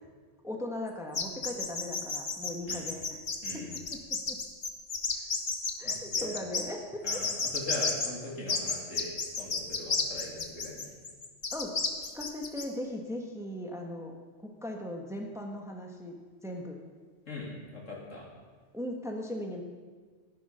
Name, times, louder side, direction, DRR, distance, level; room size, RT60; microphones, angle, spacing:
voice 1, 0.4-3.2 3.5-4.4 5.8-7.2 11.5-14.1 14.4-16.1 16.4-16.8 18.7-19.6, left 1 dB, ahead, 1 dB, 1.3 m, -38 dB
sound 1, 1.1-6.6 7.1-8.1 8.5-12.6, left 4 dB, 40° left, 1.2 m, -31 dB
voice 2, 5.8-6.4 7.0-9.1 9.4-10.9 17.3-18.3, left 2 dB, 80° left, -3 dB, 3.2 m, -41 dB
13.5 x 9.9 x 5.7 m, 1.5 s
omnidirectional pair, 1.3 m